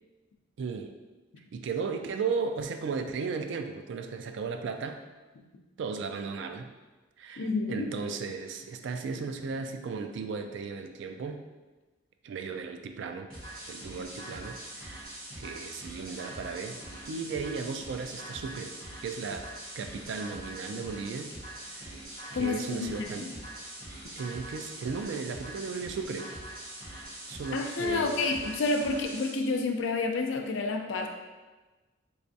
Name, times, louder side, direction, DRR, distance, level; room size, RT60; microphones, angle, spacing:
voice 1, 0.6-0.9 1.5-5.0 5.8-6.7 7.2-11.4 12.2-13.3 13.6-15.0 15.4-16.8 17.1-18.7 19.0-19.5 19.8-21.3 21.7-21.9 22.3-23.3 24.1-26.3 27.3-28.2, right 5 dB, 60° right, 7 dB, 0.3 m, -35 dB
voice 2, 7.4-7.9 22.3-23.3 27.5-31.1, left 3 dB, 65° left, 4 dB, 0.4 m, -29 dB
sound 1, 13.3-29.3, right 1 dB, 45° right, 1.3 m, -43 dB
3.3 x 3.3 x 2.6 m, 1.2 s
head